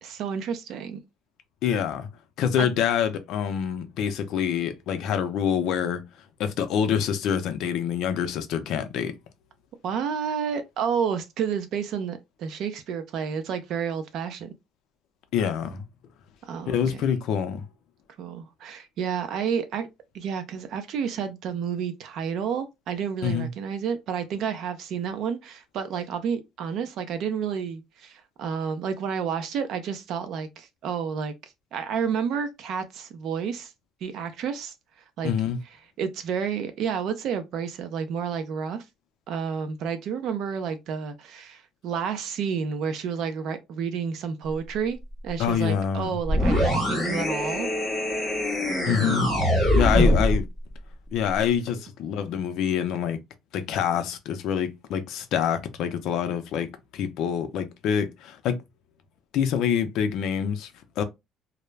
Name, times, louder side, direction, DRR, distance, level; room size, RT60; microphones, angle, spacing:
voice 1, 0.0-1.0 2.6-2.7 9.8-14.5 16.5-16.8 18.2-19.9 20.1-31.3 31.7-33.7 34.0-34.7 35.2-35.3 36.0-38.9 39.3-45.0 45.2-47.7 49.9-50.1, right 7 dB, 50° right, 0.5 m, -30 dB
voice 2, 1.6-2.1 2.4-6.0 6.4-9.2 15.3-15.8 16.7-17.6 23.2-23.5 35.2-35.6 45.4-46.1 48.8-49.3 49.7-50.4 51.1-53.2 53.5-58.6 59.3-61.0, left 8 dB, 60° left, 0.5 m, -26 dB
sound 1, 46.2-50.4, left 1 dB, 5° left, 1.1 m, -23 dB
2.3 x 2.1 x 3.1 m
cardioid pair, 170°, 0 cm